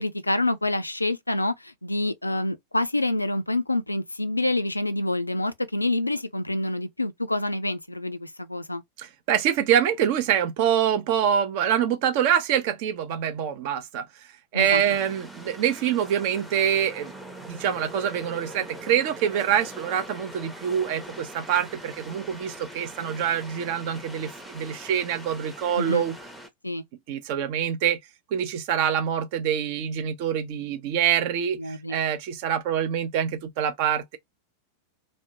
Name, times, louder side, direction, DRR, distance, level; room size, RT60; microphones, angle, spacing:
voice 1, 0.0-8.8 14.5-14.8 25.8-26.0 26.6-26.8 31.6-32.0, left 2 dB, 85° left, 0.3 m, -27 dB
voice 2, 9.0-14.0 14.5-17.1 17.4-26.2 27.1-28.0 28.3-34.2, right 9 dB, 45° right, 0.5 m, -25 dB
sound 1, 14.7-26.5, right 1 dB, ahead, 0.6 m, -42 dB
2.6 x 2.1 x 2.6 m
figure-of-eight pair, 90°, 0 cm